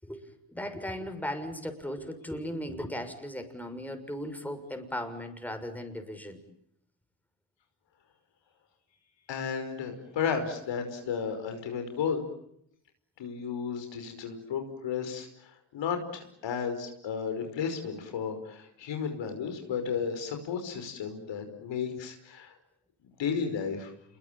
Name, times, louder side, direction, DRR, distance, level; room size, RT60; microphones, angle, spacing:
voice 1, 0.0-6.4, equal, 5° left, 7 dB, 6.6 m, -37 dB
voice 2, 9.3-12.2 13.2-22.5 23.2-23.9, left 6 dB, 80° left, 6 dB, 5.4 m, -33 dB
28.5 x 23.0 x 8.9 m, 0.76 s
cardioid pair, 65°, 43 cm